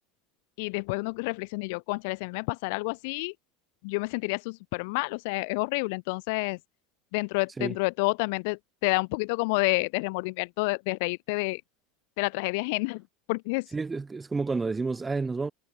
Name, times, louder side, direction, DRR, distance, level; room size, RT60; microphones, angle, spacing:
voice 1, 0.6-3.3 3.8-6.6 7.1-11.6 12.2-13.7, left 29 dB, 65° left, 1.0 m, -29 dB
voice 2, 13.7-15.5, right 4 dB, 10° right, 2.2 m, -30 dB
supercardioid pair, 150°, 0 cm